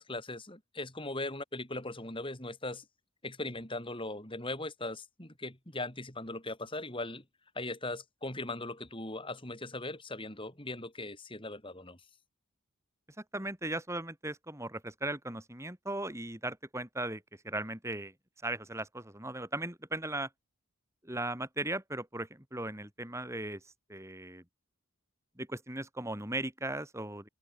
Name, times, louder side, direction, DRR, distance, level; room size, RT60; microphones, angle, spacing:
voice 1, 0.0-2.8 3.2-7.2 7.5-12.0, left 2 dB, 20° left, 4.4 m, -39 dB
voice 2, 13.3-18.1 18.4-20.3 21.0-24.4 25.4-27.2, right 2 dB, 10° right, 3.0 m, -37 dB
open air
head